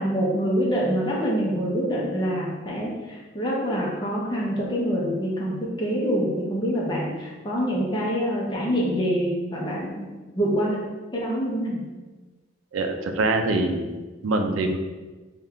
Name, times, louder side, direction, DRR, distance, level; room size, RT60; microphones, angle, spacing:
voice 1, 0.0-10.1 10.4-10.8 11.1-11.9, equal, 20° left, -4 dB, 0.7 m, -25 dB
voice 2, 12.7-14.8, right 2 dB, 90° right, 5 dB, 0.4 m, -24 dB
3.2 x 2.4 x 3.6 m, 1.2 s
head